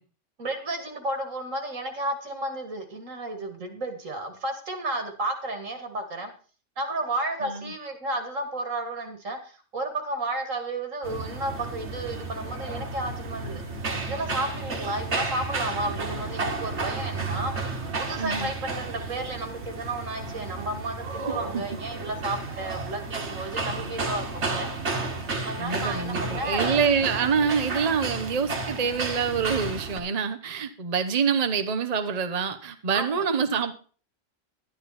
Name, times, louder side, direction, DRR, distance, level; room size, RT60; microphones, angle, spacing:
voice 1, 0.4-6.3 6.8-13.6 14.1-17.5 18.0-24.7 25.4-26.8 32.9-33.3, right 2 dB, 85° right, 5 dB, 2.7 m, -32 dB
voice 2, 7.4-7.7 18.2-18.5 21.5-21.6 25.6-33.7, right 6 dB, 35° right, 9 dB, 0.9 m, -26 dB
sound 1, 11.0-30.0, right 3 dB, 60° right, 1.9 m, -32 dB
12.0 x 11.0 x 4.2 m, 0.39 s
omnidirectional pair, 1.3 m